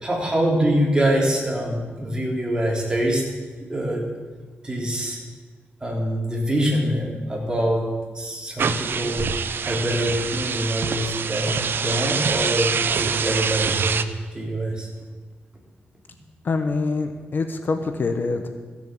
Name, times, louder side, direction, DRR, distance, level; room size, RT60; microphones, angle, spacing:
voice 1, 0.0-3.2 3.6-4.1 4.6-5.2 5.8-7.9 8.1-9.3 9.6-14.0 14.3-14.9, right 1 dB, 20° right, -2 dB, 3.6 m, -24 dB
sound 1, 8.6-14.0, right 6 dB, 65° right, 0.6 m, -25 dB
voice 2, 16.4-18.6, left 3 dB, 55° left, 7 dB, 1.0 m, -25 dB
15.5 x 7.4 x 7.5 m, 1.4 s
wide cardioid pair, 105°, 4 cm